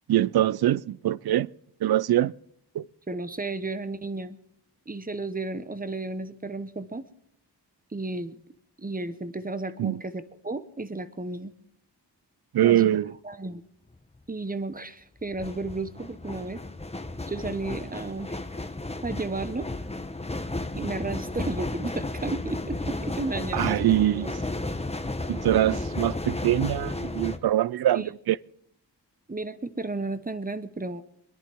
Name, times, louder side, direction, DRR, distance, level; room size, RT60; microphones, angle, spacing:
voice 1, 0.1-1.5 1.8-2.3 2.7-2.8 9.8-10.0 12.5-13.1 23.5-24.3 25.3-28.4, right 13 dB, 60° right, 0.5 m, -23 dB
voice 2, 3.1-4.4 4.9-7.0 7.9-8.4 8.8-11.5 12.6-13.0 13.2-13.6 14.3-16.6 17.3-18.4 19.0-19.7 20.7-24.4 27.9-28.0 29.3-31.0, right 2 dB, 20° right, 1.0 m, -33 dB
sound 1, 13.9-14.2 15.2-27.4, left 2 dB, 15° left, 1.0 m, -33 dB
25.0 x 10.5 x 3.6 m
cardioid pair, 45°, 42 cm